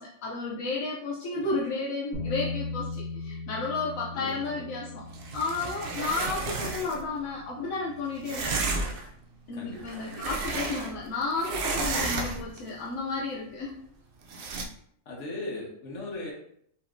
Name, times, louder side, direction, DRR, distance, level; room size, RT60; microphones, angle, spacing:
voice 1, 0.0-5.0 5.3-8.6 9.5-13.8, left 3 dB, 80° left, -4 dB, 1.1 m, -32 dB
Bass guitar, 2.1-8.4, left 2 dB, 85° right, 1.7 m, -39 dB
voice 2, 4.1-4.6 9.5-10.2 15.0-16.3, left 2 dB, 65° left, -2 dB, 1.5 m, -39 dB
sound 1, 5.1-7.1 8.2-9.1 9.7-11.1 11.4-12.6 14.3-14.6, right 3 dB, 60° right, 0.6 m, -32 dB
5.4 x 3.5 x 2.6 m, 0.68 s
omnidirectional pair, 1.4 m